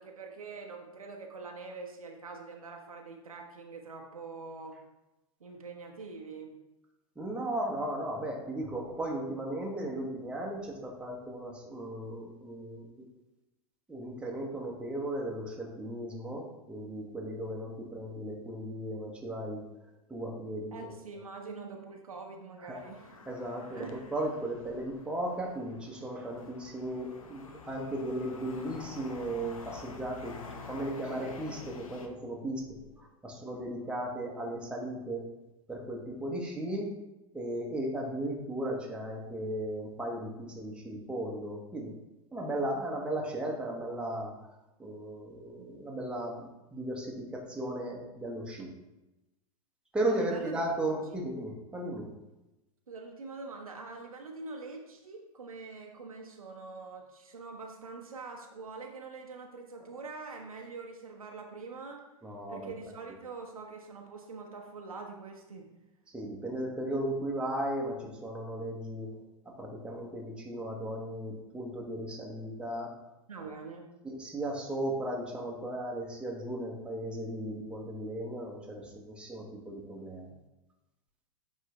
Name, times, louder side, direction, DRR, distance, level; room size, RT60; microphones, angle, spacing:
voice 1, 0.0-4.8 5.4-6.5 20.7-23.1 23.7-24.0 50.0-50.6 50.9-51.2 52.9-62.0 62.5-65.7 73.3-73.9, right 4 dB, 75° right, 2 dB, 0.9 m, -44 dB
voice 2, 7.2-13.0 13.9-19.6 20.1-20.9 22.7-22.8 23.3-30.3 30.7-32.6 33.0-35.3 35.7-36.9 37.3-41.9 42.3-44.3 44.8-48.7 49.9-52.1 62.2-62.7 66.1-69.1 69.6-72.9 73.4-73.5 74.0-80.3, right 1 dB, 5° right, -2 dB, 1.2 m, -36 dB
sound 1, 22.7-32.1, left 4 dB, 70° left, 0.8 m, -48 dB
8.9 x 3.7 x 3.3 m, 0.98 s
figure-of-eight pair, 95°, 18 cm